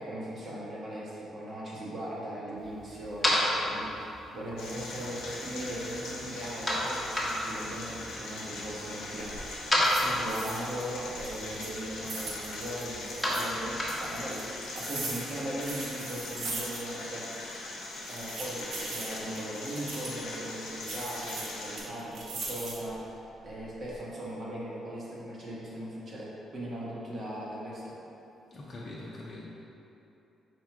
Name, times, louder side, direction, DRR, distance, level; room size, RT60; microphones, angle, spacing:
voice 1, 0.0-9.3 10.0-17.3 18.1-27.9, right 1 dB, 50° right, -6 dB, 1.1 m, -39 dB
sound 1, 2.6-14.5, left 1 dB, 5° left, 1.0 m, -33 dB
sound 2, 4.6-21.8, left 2 dB, 85° left, 0.7 m, -41 dB
sound 3, 9.1-9.4 9.8-10.9 11.2-13.5 13.9-17.1 17.3-17.4 18.0-20.2 20.8-22.9 23.4-24.0, right 3 dB, 80° right, 0.7 m, -40 dB
voice 2, 28.5-29.4, left 2 dB, 35° left, -6 dB, 0.6 m, -42 dB
4.4 x 2.4 x 4.6 m, 2.9 s
cardioid pair, 90°, 0 cm